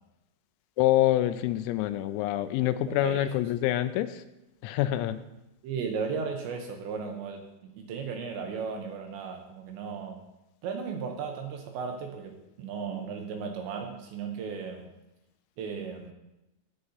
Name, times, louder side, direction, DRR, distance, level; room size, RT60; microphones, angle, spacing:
voice 1, 0.8-4.2 4.6-5.2, left 14 dB, 85° left, 12 dB, 3.3 m, -26 dB
voice 2, 2.9-3.3 5.6-10.2 10.6-14.9 15.6-16.1, right 5 dB, 75° right, 3 dB, 2.8 m, -35 dB
17.0 x 9.6 x 2.8 m, 0.92 s
omnidirectional pair, 5.9 m